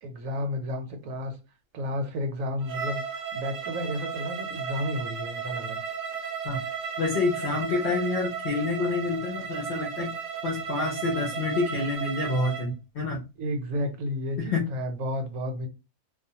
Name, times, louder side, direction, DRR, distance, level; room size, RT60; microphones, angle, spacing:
voice 1, 0.0-1.4 1.7-5.8 13.4-15.7, left 1 dB, 70° right, 0.9 m, -32 dB
Bowed string instrument, 2.6-12.7, right 7 dB, 45° right, 0.7 m, -34 dB
voice 2, 7.0-10.2 10.4-13.2 14.4-14.7, left 3 dB, 55° left, 0.6 m, -28 dB
2.4 x 2.1 x 2.7 m
omnidirectional pair, 1.5 m